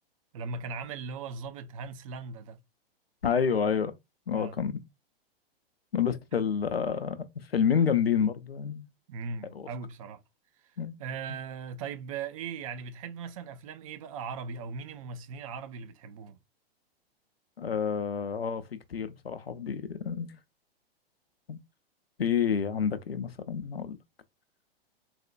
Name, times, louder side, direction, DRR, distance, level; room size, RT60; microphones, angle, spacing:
voice 1, 0.3-2.6 4.3-4.6 9.1-10.2 10.6-16.4, right 5 dB, 35° right, 0.5 m, -39 dB
voice 2, 3.2-4.0 4.3-4.7 5.9-8.9 9.5-9.7 10.8-10.9 17.6-18.6 18.9-20.4 21.5-21.6 22.2-24.0, left 7 dB, 80° left, 0.6 m, -28 dB
4.1 x 2.1 x 2.5 m
figure-of-eight pair, 105°, 30 cm